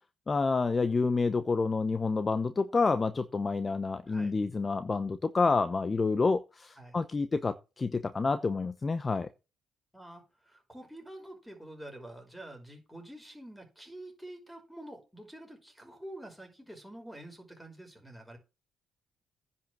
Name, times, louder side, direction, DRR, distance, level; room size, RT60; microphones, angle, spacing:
voice 1, 0.3-9.3, left 4 dB, 30° left, 0.8 m, -28 dB
voice 2, 4.1-4.4 6.8-7.0 9.9-18.4, right 1 dB, ahead, 5.4 m, -47 dB
10.0 x 5.7 x 6.1 m
cardioid pair, 90°, 0 cm